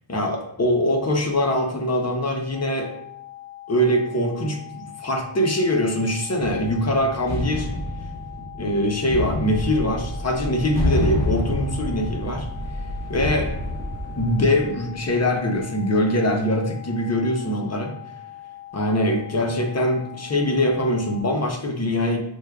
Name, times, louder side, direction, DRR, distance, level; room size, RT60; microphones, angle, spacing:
voice 1, 0.1-2.9 3.7-7.7 8.6-12.5 13.1-13.5 14.2-17.9 18.7-22.2, left 1 dB, 35° left, 2 dB, 0.6 m, -23 dB
sound 1, 2.5-21.2, left 14 dB, 50° left, 1.4 m, -42 dB
sound 2, 6.4-15.1, left 1 dB, 5° left, 1.5 m, -29 dB
sound 3, 9.5-14.5, right 1 dB, 75° right, 0.6 m, -34 dB
6.1 x 2.2 x 2.2 m, 0.77 s
wide cardioid pair, 95°, 49 cm